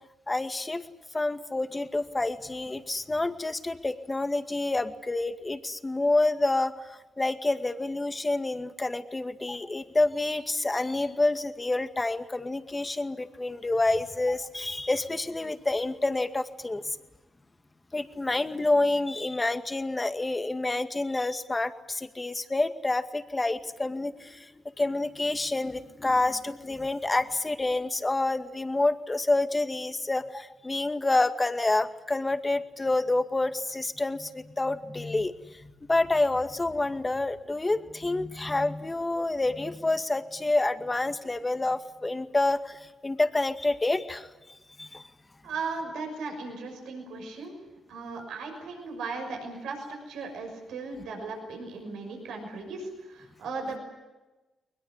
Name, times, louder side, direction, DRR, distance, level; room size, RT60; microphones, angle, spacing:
voice 1, 0.3-0.8 1.1-6.7 7.2-17.0 17.9-24.5 24.8-35.3 35.9-44.3 44.8-45.0, left 2 dB, 25° left, 8 dB, 2.1 m, -28 dB
voice 2, 45.4-47.6 47.9-53.8, right 4 dB, 80° right, 3 dB, 6.2 m, -37 dB
21.5 x 21.0 x 9.9 m, 1.1 s
supercardioid pair, 50°, 0 cm